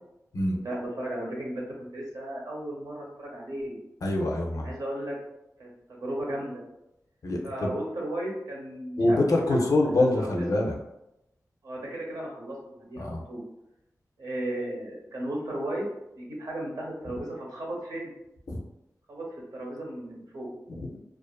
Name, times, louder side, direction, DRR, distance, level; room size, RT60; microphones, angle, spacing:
voice 1, 0.6-3.8 4.6-5.2 5.6-6.6 7.4-9.8 10.2-10.7 11.6-13.4 14.2-15.9 16.2-18.1 19.1-20.5, right 1 dB, 80° right, -3 dB, 0.8 m, -35 dB
voice 2, 4.0-4.7 7.2-7.7 9.0-10.7 13.0-13.2 18.5-18.6 20.7-21.0, left 2 dB, 70° left, 0 dB, 0.5 m, -25 dB
2.4 x 2.4 x 2.3 m, 0.88 s
wide cardioid pair, 105°, 6 cm